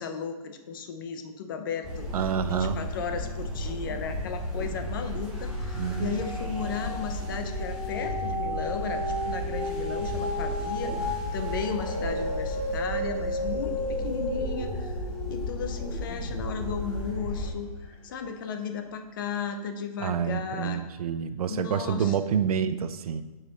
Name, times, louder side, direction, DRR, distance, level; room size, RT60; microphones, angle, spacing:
voice 1, 0.0-15.0 15.3-20.8 21.5-22.2, left 6 dB, 35° left, 7 dB, 0.6 m, -35 dB
sound 1, 1.8-17.5, equal, 5° right, 1.3 m, -34 dB
voice 2, 2.1-2.8 5.7-6.1 20.0-23.2, right 8 dB, 70° right, 12 dB, 0.6 m, -28 dB
sound 2, 4.2-4.7 5.0-17.5 18.1-18.2, left 1 dB, 15° left, 2.6 m, -35 dB
8.2 x 5.7 x 4.0 m, 1.1 s
hypercardioid pair, 175°, 19 cm